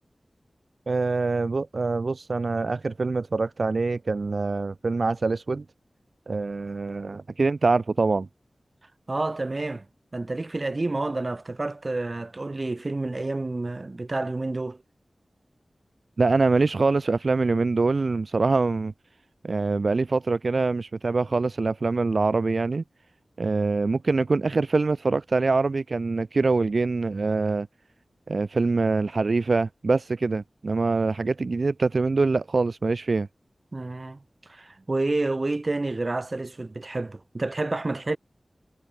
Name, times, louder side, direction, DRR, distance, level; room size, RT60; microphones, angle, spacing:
voice 1, 0.9-5.6 6.3-8.3 16.2-18.9 19.4-22.8 23.4-27.7 28.3-33.3, right 3 dB, 70° right, 0.3 m, -24 dB
voice 2, 9.1-9.9 10.1-14.8 33.7-38.2, right 2 dB, 45° right, 0.8 m, -29 dB
wide cardioid pair, 60°, 0 cm